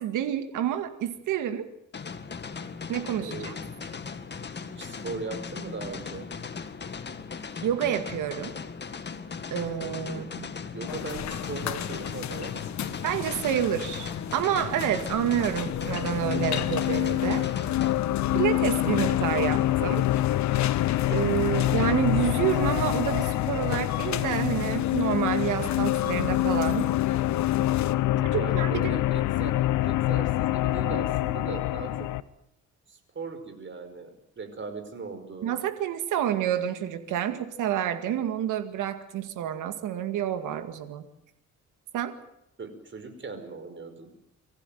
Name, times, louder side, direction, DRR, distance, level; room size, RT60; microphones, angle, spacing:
voice 1, 0.0-1.7 2.9-3.5 7.6-8.5 9.5-10.5 13.0-17.4 18.3-20.1 21.1-26.9 28.3-28.8 35.4-41.0 41.9-42.1, right 10 dB, 85° right, 9 dB, 2.1 m, -28 dB
sound 1, 1.9-17.9, left 5 dB, 35° left, 1.9 m, -38 dB
voice 2, 3.2-3.9 4.7-6.3 10.1-10.4 10.7-12.6 28.0-29.5 29.8-32.1 32.9-35.5 42.6-44.1, right 4 dB, 40° right, 8 dB, 5.4 m, -39 dB
sound 2, 10.9-28.0, left 10 dB, 65° left, 1.3 m, -36 dB
sound 3, 15.2-32.2, left 15 dB, 85° left, 0.9 m, -26 dB
25.0 x 15.0 x 9.3 m, 0.79 s
cardioid pair, 90°, 30 cm